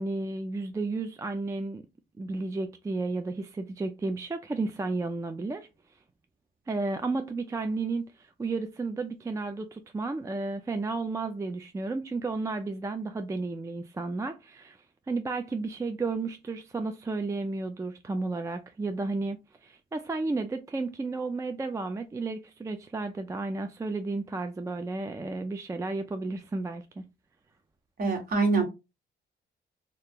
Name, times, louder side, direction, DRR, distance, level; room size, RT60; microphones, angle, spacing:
voice 1, 0.0-1.8 2.2-5.7 6.7-14.8 15.1-27.1, right 3 dB, 15° right, 0.3 m, -32 dB
voice 2, 28.0-28.6, right 3 dB, 45° right, 1.3 m, -24 dB
2.8 x 2.4 x 3.5 m
cardioid pair, 90°, 20 cm